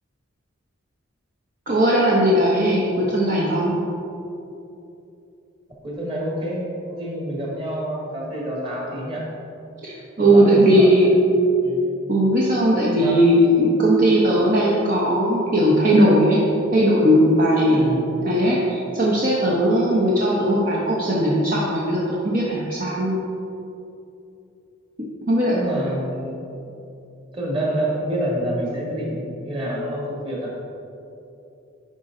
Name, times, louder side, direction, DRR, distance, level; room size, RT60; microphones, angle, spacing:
voice 1, 1.7-3.7 9.8-11.1 12.1-16.4 16.7-17.8 18.2-23.2 25.3-25.6, equal, 40° right, -6 dB, 1.0 m, -18 dB
voice 2, 5.8-6.6 6.9-9.2 10.2-11.1 11.6-12.0 13.0-13.3 17.7-18.1 25.5-26.7 27.3-30.6, right 1 dB, 25° right, -4 dB, 1.8 m, -28 dB
10.5 x 5.3 x 3.9 m, 2.8 s
head